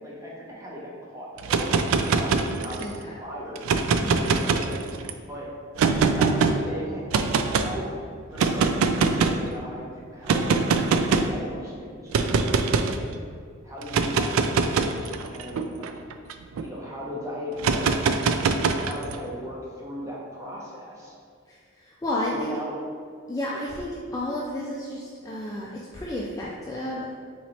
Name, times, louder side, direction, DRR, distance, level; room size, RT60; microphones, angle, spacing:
voice 1, 0.0-3.6 4.3-4.6 5.3-5.5 5.8-5.9 6.1-7.9 8.3-10.5 11.0-12.5 13.0-13.1 13.6-15.9 16.6-21.1 22.3-22.8 23.5-23.6, equal, 15° right, -5 dB, 0.8 m, -38 dB
sound 1, 1.4-2.9 3.6-5.1 5.8-6.5 7.1-7.7 8.4-9.5 10.3-11.4 12.1-13.0 13.8-16.6 17.6-19.2, right 4 dB, 75° right, 0.3 m, -23 dB
voice 2, 4.0-4.4 21.5-22.6 23.3-27.1, left 1 dB, 15° left, -4 dB, 0.3 m, -32 dB
3.9 x 3.1 x 4.2 m, 2.1 s
head